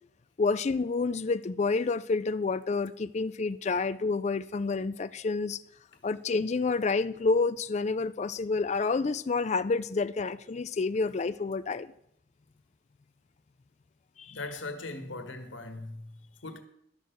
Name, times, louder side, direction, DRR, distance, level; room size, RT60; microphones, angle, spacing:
voice 1, 0.4-5.6 6.0-11.9 14.2-14.4, left 4 dB, 35° left, 0.4 m, -29 dB
voice 2, 14.3-16.6, left 2 dB, 75° left, 1.5 m, -40 dB
12.0 x 6.7 x 7.8 m
head